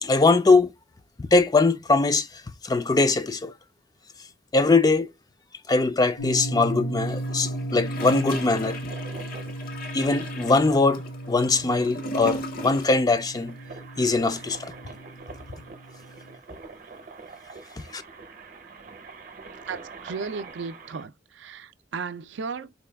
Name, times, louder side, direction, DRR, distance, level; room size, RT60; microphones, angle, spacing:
voice 1, 0.0-0.7 1.2-3.5 4.5-5.1 5.7-8.8 9.9-13.5 14.0-14.7 17.8-18.0, left 3 dB, 20° left, 0.3 m, -22 dB
sound 1, 6.2-16.4, right 1 dB, 80° left, 1.1 m, -35 dB
Gurgling / Toilet flush, 7.0-13.1 13.4-13.5, left 1 dB, 50° left, 0.7 m, -37 dB
sound 2, 7.7-21.1, right 4 dB, 45° right, 0.7 m, -45 dB
voice 2, 19.7-22.7, right 5 dB, 75° right, 0.4 m, -35 dB
4.1 x 2.2 x 3.3 m
head